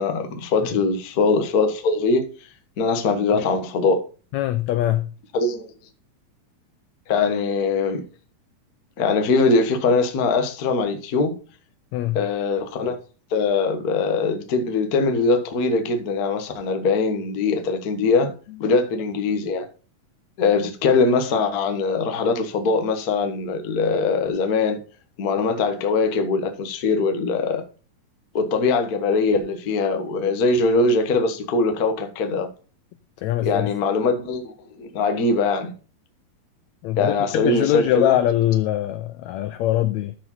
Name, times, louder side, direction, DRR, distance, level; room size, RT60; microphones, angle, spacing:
voice 1, 0.0-2.3 2.8-4.0 5.3-5.7 7.1-8.0 9.0-11.4 12.1-13.0 13.3-18.3 18.6-19.6 20.4-24.8 25.2-27.6 28.3-32.5 33.4-34.5 34.8-35.7 37.0-38.1, left 4 dB, 65° left, 0.9 m, -22 dB
voice 2, 4.3-5.1 11.9-12.2 33.2-33.7 36.8-40.2, left 13 dB, 85° left, 1.6 m, -22 dB
12.5 x 4.9 x 4.0 m
omnidirectional pair, 3.9 m